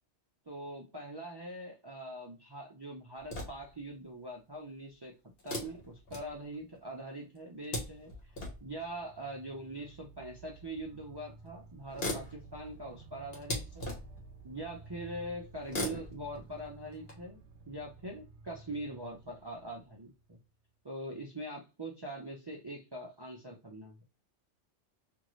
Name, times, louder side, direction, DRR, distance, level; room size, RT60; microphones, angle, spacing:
voice 1, 0.5-5.1 5.4-13.9 14.4-17.4 17.7-20.4 20.8-24.0, right 1 dB, 35° right, -1 dB, 0.4 m, -43 dB
sound 1, 3.2-3.8 5.4-6.8 7.3-8.7 9.9-10.0 11.1-11.2 11.5-11.6 11.8-14.3 15.6-17.1, left 1 dB, 55° left, 1.3 m, -40 dB
sound 2, 8.1-20.7, right 3 dB, 70° right, 0.9 m, -54 dB
2.6 x 2.5 x 3.0 m, 0.31 s
omnidirectional pair, 1.2 m